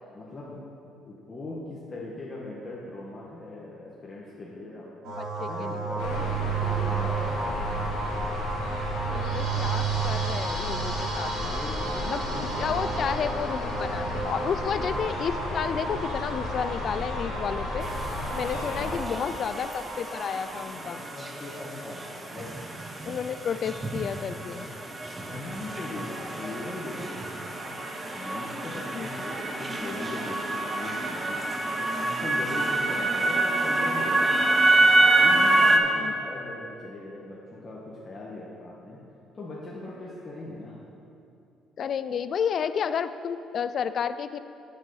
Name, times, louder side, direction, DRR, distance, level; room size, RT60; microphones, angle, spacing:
voice 1, 0.1-0.6 1.0-4.9 5.4-8.0 11.3-13.3 14.6-14.7 18.8-19.3 20.5-22.6 25.2-27.8 28.1-31.4 32.0-34.7 35.2-39.0 39.3-40.9, left 2 dB, 30° left, -5 dB, 1.3 m, -40 dB
sound 1, 5.0-20.6, right 4 dB, 75° right, 1.8 m, -32 dB
voice 2, 5.2-5.9 9.1-11.6 12.0-17.9 18.3-21.0 23.1-24.7 28.9-29.1 35.9-36.1 41.8-44.4, left 7 dB, 55° left, 13 dB, 0.4 m, -31 dB
sound 2, 6.0-19.0, left 2 dB, 85° left, 1.8 m, -34 dB
sound 3, 17.8-35.8, right 2 dB, 25° right, 0.9 m, -27 dB
8.2 x 6.1 x 5.6 m, 2.7 s
cardioid pair, 90°, 0 cm